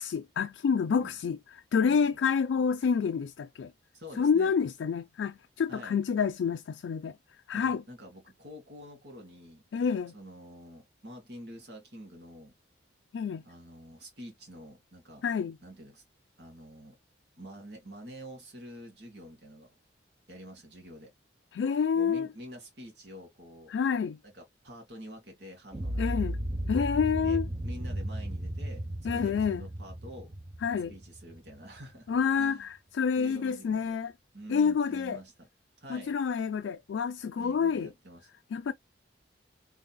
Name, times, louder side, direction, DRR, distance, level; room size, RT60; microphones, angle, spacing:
voice 1, 0.0-1.4 1.7-3.7 4.2-7.1 7.5-7.8 9.7-10.1 13.1-13.4 15.2-15.6 21.5-22.3 23.7-24.2 26.0-26.4 26.7-27.5 29.0-29.7 30.6-30.9 32.1-34.1 34.5-35.2 35.9-37.9 38.5-38.7, left 6 dB, 75° left, 0.3 m, -28 dB
voice 2, 3.9-4.5 5.7-6.0 7.5-9.6 10.1-12.5 13.4-15.3 15.6-16.0 16.4-17.0 17.4-19.8 20.3-21.1 21.9-23.7 24.2-26.3 27.2-30.3 30.9-32.1 32.4-32.7 33.2-33.9 34.3-35.3 35.8-36.2 37.4-38.3, equal, 60° right, 2.1 m, -47 dB
sound 1, 25.7-31.8, right 1 dB, 20° right, 0.5 m, -35 dB
3.8 x 3.4 x 2.2 m
head